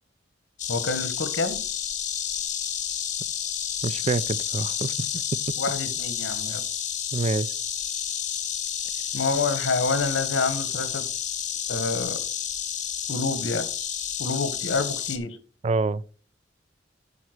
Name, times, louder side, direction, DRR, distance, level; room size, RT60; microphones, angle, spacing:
Insect, 0.6-15.2, left 9 dB, 40° left, 1.1 m, -30 dB
voice 1, 0.7-1.6 5.6-6.6 9.1-11.0 11.7-12.2 13.1-13.7 14.2-15.4, left 3 dB, 80° left, 1.2 m, -27 dB
voice 2, 3.8-5.2 7.1-7.5 15.6-16.0, right 3 dB, 35° right, 0.3 m, -26 dB
9.3 x 4.3 x 6.4 m
head